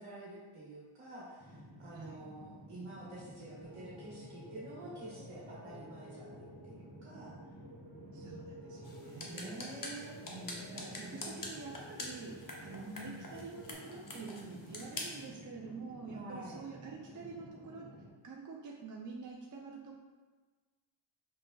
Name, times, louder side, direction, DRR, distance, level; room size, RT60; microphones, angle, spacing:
voice 1, 0.0-7.3 9.2-10.1 11.0-11.4 12.7-13.3 16.1-16.6, right 1 dB, 80° right, -7 dB, 1.1 m, -48 dB
sound 1, 1.4-18.1, equal, 20° left, 1.0 m, -53 dB
sound 2, 3.6-13.7, right 1 dB, 60° right, 0.9 m, -53 dB
voice 2, 8.1-9.5 10.3-17.9 18.2-20.0, right 4 dB, 40° right, -2 dB, 0.5 m, -47 dB
sound 3, 8.8-15.3, left 2 dB, 40° left, 0.8 m, -46 dB
5.3 x 3.2 x 2.3 m, 1.4 s
wide cardioid pair, 75°, 50 cm